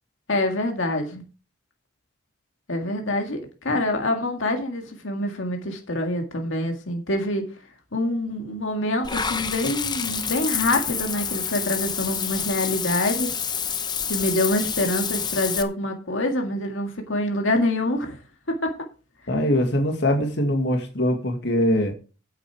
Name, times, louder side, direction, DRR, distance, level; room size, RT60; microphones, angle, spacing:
voice 1, 0.3-1.2 2.7-7.5 7.9-13.4 14.1-18.2 18.6-18.7, left 1 dB, 80° left, 3 dB, 1.9 m, -26 dB
Water / Bathtub (filling or washing), 9.0-15.6, left 7 dB, 20° left, 0.8 m, -28 dB
voice 2, 19.3-21.9, equal, 60° left, 4 dB, 2.1 m, -22 dB
9.5 x 8.2 x 4.8 m, 0.35 s
head